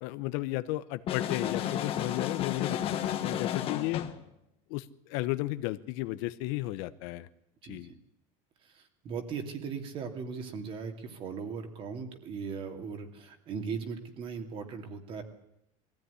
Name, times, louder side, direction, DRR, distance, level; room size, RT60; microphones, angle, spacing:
voice 1, 0.0-4.0 4.7-7.3 7.7-7.9, left 17 dB, 65° left, 13 dB, 1.0 m, -34 dB
sound 1, 1.1-4.2, left 10 dB, 35° left, 1.5 m, -32 dB
voice 2, 8.6-15.2, right 5 dB, 35° right, 6 dB, 2.7 m, -38 dB
22.0 x 15.5 x 9.9 m, 0.81 s
cardioid pair, 180°, 17 cm